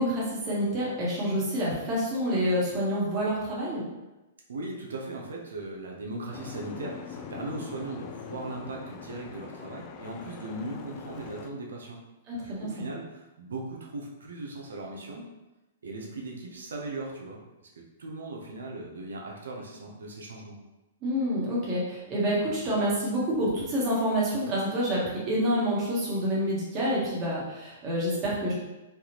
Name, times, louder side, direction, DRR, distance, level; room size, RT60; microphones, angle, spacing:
voice 1, 0.0-3.9 12.3-12.7 21.0-28.5, equal, 30° right, -6 dB, 1.2 m, -28 dB
voice 2, 4.5-12.0 12.4-15.3 15.8-17.4 17.8-20.5, right 2 dB, 85° right, -1 dB, 0.7 m, -38 dB
Boat Water vehicle, 6.3-11.5, left 6 dB, 35° left, 0.3 m, -43 dB
3.4 x 2.4 x 2.9 m, 1.0 s
hypercardioid pair, 135°, 0 cm